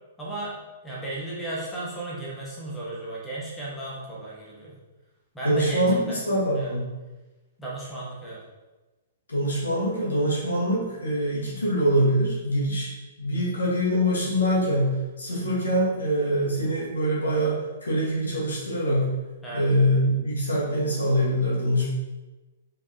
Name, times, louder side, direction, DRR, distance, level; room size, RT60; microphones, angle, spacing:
voice 1, 0.2-0.5 0.8-4.7 5.3-6.2 6.5-6.7 7.6-8.4 19.4-19.7, right 2 dB, 10° left, -6 dB, 1.2 m, -34 dB
voice 2, 5.4-6.8 9.3-12.9 13.2-19.1 19.5-21.9, equal, 70° left, -5 dB, 1.5 m, -24 dB
4.8 x 3.5 x 2.8 m, 1.1 s
figure-of-eight pair, 110°, 0 cm